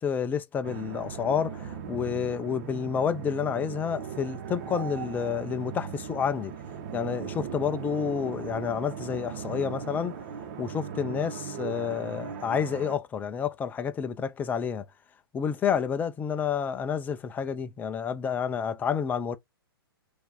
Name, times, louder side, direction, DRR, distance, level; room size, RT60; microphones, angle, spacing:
voice 1, 0.0-6.5 6.9-10.1 10.6-14.9 15.3-19.4, left 7 dB, 15° left, 0.5 m, -29 dB
sound 1, 0.6-13.0, right 7 dB, 45° right, 1.1 m, -38 dB
4.4 x 2.6 x 3.9 m
hypercardioid pair, 130°, 13 cm